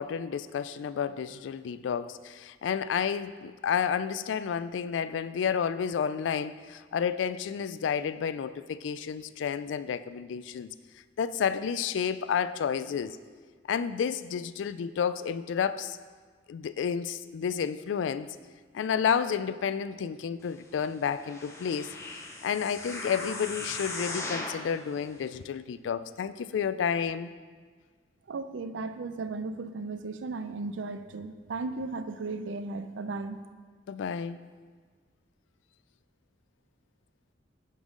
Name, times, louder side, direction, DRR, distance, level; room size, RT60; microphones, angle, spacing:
voice 1, 0.0-10.7 11.2-13.2 13.7-16.0 16.5-18.4 18.7-21.9 22.4-27.3 33.9-34.4, left 7 dB, 80° left, 14 dB, 0.3 m, -31 dB
sound 1, 21.1-24.7 25.3-25.4, left 2 dB, 15° left, 0.7 m, -38 dB
voice 2, 28.3-33.4, right 3 dB, 80° right, 11 dB, 0.5 m, -35 dB
11.0 x 5.4 x 3.7 m, 1.5 s
head